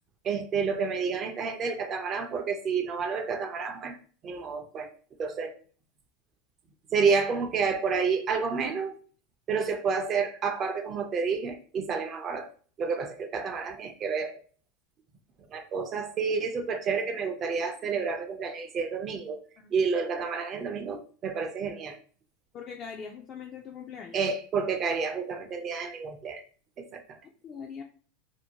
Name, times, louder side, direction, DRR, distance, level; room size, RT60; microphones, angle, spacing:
voice 1, 0.2-4.0 4.2-4.9 5.2-5.5 6.9-8.9 9.5-12.5 12.8-14.4 15.5-19.4 19.7-22.0 24.1-26.4 26.8-27.2, right 5 dB, 30° right, 6 dB, 0.5 m, -29 dB
voice 2, 22.5-24.2 27.4-27.8, left 6 dB, 35° left, 1 dB, 0.3 m, -41 dB
2.6 x 2.1 x 2.7 m, 0.42 s
supercardioid pair, 135°, 0 cm